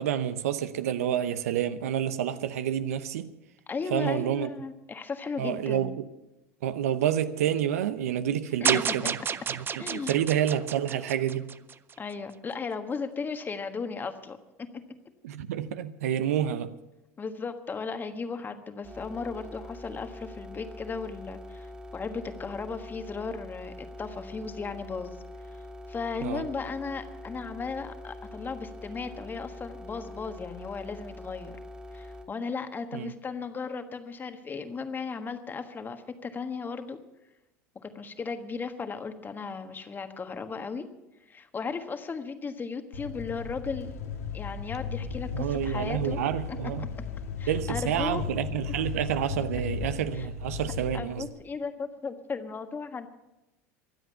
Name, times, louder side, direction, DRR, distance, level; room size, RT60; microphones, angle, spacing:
voice 1, 0.0-3.3 3.9-4.5 5.4-6.0 6.6-9.2 9.6-11.5 15.2-16.7 26.2-26.4 32.9-33.1 45.3-46.9 47.5-51.3, right 10 dB, 80° right, 0.7 m, -29 dB
voice 2, 3.7-5.9 8.6-8.7 9.8-10.1 12.0-14.8 17.2-25.2 25.4-25.6 25.9-31.5 31.9-37.0 37.7-40.9 41.3-43.9 44.3-46.9 47.4-48.2 50.1-50.3 50.9-53.1, left 5 dB, 25° left, 1.4 m, -36 dB
sound 1, 8.6-11.9, right 7 dB, 25° right, 0.5 m, -30 dB
sound 2, 18.8-32.3, left 1 dB, 10° right, 2.4 m, -44 dB
sound 3, 42.9-51.3, left 5 dB, 80° left, 1.9 m, -36 dB
23.5 x 8.0 x 5.6 m
hypercardioid pair, 85°, 8 cm